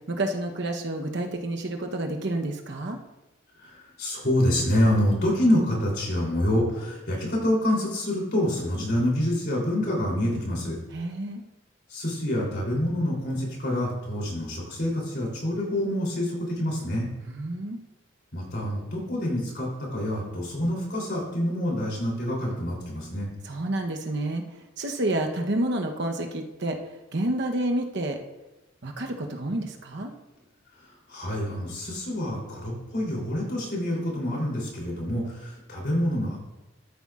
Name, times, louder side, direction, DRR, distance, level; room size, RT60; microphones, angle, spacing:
voice 1, 0.1-3.0 10.9-11.4 17.2-17.8 23.4-24.4 24.8-26.8 27.1-28.2 28.8-30.1, right 1 dB, 60° right, 3 dB, 1.0 m, -29 dB
voice 2, 3.6-10.7 11.9-17.1 18.3-23.3 31.1-36.4, left 1 dB, 55° left, -3 dB, 3.4 m, -27 dB
13.5 x 8.2 x 2.5 m, 1.0 s
head